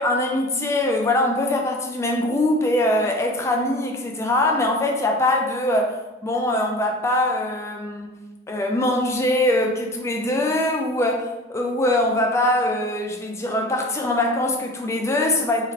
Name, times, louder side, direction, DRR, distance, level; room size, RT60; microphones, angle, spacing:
voice 1, 0.0-8.2 8.5-15.7, left 1 dB, 15° left, 1 dB, 0.3 m, -22 dB
2.9 x 2.4 x 2.8 m, 1.1 s
head